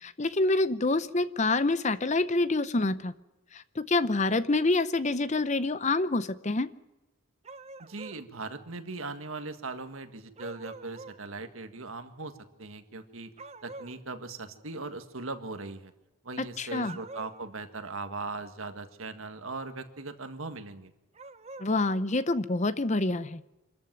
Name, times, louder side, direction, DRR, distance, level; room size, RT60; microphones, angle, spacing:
voice 1, 0.0-3.1 3.5-6.7 16.4-17.0 21.6-23.4, left 2 dB, 35° left, 15 dB, 0.7 m, -27 dB
sound 1, 7.4-8.2 10.4-11.2 13.4-14.0 16.7-17.5 21.1-21.7, right 3 dB, 30° right, 0.8 m, -45 dB
voice 2, 7.8-12.3 12.6-13.3 13.6-15.9 16.2-20.9, right 3 dB, 75° right, 8 dB, 1.8 m, -39 dB
25.5 x 14.0 x 9.2 m, 1.0 s
head